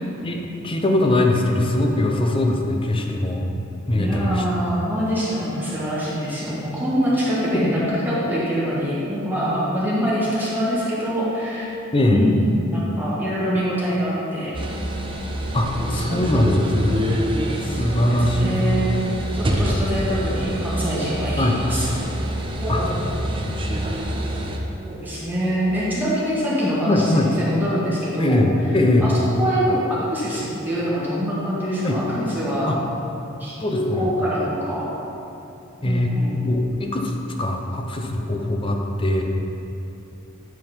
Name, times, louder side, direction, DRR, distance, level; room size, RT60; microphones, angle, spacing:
voice 1, 0.2-3.5 3.9-4.4 7.5-7.7 11.9-12.3 15.5-17.2 17.6-18.6 21.4-21.6 22.7-22.8 26.8-27.3 28.2-29.1 31.8-32.0 32.7-32.8 33.6-34.1 35.8-36.1 36.4-37.1 37.4-39.2, left 1 dB, 25° left, 2 dB, 0.6 m, -21 dB
voice 2, 4.0-11.6 12.1-12.4 12.7-14.5 15.8-16.2 17.7-18.9 19.3-21.9 22.6-23.0 24.9-28.4 29.0-29.1 29.4-32.7 33.4-34.9 35.8-36.4, equal, 10° right, -9 dB, 1.5 m, -24 dB
sound 1, 14.5-24.6, equal, 25° right, 0.6 m, -26 dB
9.5 x 3.8 x 5.2 m, 2.8 s
head